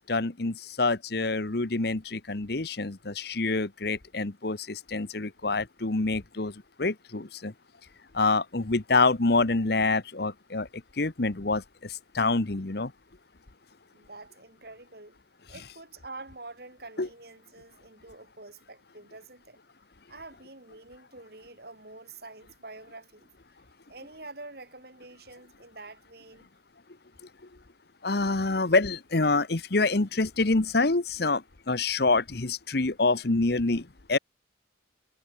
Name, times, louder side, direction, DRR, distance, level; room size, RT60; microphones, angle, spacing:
voice 1, 0.0-6.5 6.8-7.5 8.1-10.7 11.0-12.9 17.0-17.1 28.0-34.2, left 3 dB, 55° left, 1.1 m, -26 dB
voice 2, 13.9-15.2 15.5-19.6 20.1-23.3 23.9-26.5, right 2 dB, 55° right, 5.5 m, -46 dB
head